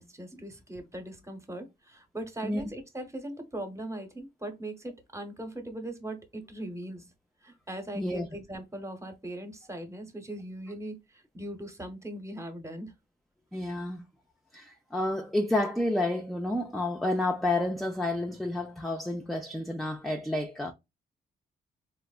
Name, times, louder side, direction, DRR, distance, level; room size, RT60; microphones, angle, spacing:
voice 1, 0.0-7.0 7.4-12.9 13.6-13.7, right 1 dB, 15° right, 0.9 m, -40 dB
voice 2, 8.0-8.3 13.5-14.0 14.5-20.7, left 1 dB, ahead, 0.4 m, -30 dB
3.2 x 2.1 x 2.3 m
cardioid pair, 75°, 18 cm